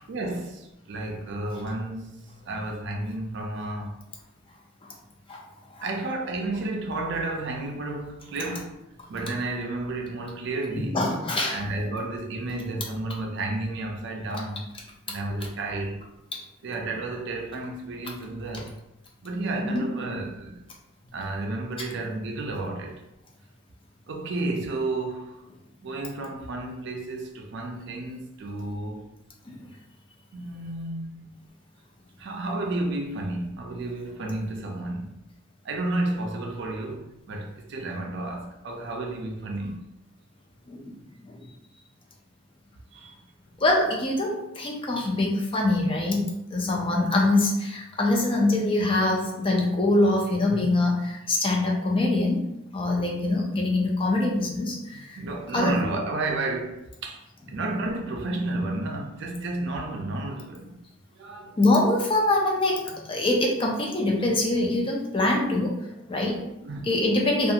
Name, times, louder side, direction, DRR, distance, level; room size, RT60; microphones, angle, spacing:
voice 1, 0.1-4.0 5.8-8.8 9.1-11.0 11.5-14.7 15.1-16.0 16.6-18.8 19.2-20.6 21.1-23.0 24.1-25.4 25.8-29.0 30.3-31.4 32.2-35.1 35.6-39.8 42.9-43.5 55.2-60.7 61.2-61.7 66.3-66.9, right 2 dB, 60° right, 0.4 m, -32 dB
voice 2, 10.8-11.6 19.6-19.8 29.5-29.6 40.7-41.0 41.2-41.4 43.6-46.2 46.5-52.4 52.7-55.2 55.5-55.7 61.6-65.7 66.1-66.4 66.8-67.5, left 2 dB, 25° left, 0.4 m, -24 dB
2.4 x 2.4 x 2.8 m
head